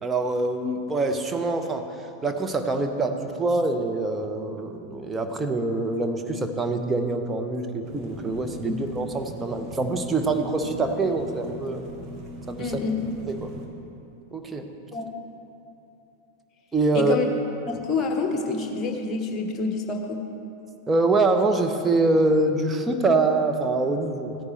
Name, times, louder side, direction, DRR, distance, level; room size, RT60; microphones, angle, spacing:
voice 1, 0.0-11.9 12.5-12.7 13.3-13.5 14.3-14.7 16.7-17.1 20.9-24.4, right 2 dB, 15° right, 5 dB, 0.8 m, -25 dB
sound 1, 7.8-13.7, equal, 35° right, 1.4 m, -40 dB
voice 2, 12.6-13.1 14.9-15.1 16.9-17.3 17.7-20.3, left 4 dB, 25° left, 3 dB, 1.2 m, -27 dB
16.0 x 9.7 x 3.3 m, 2.7 s
figure-of-eight pair, 90°, 0 cm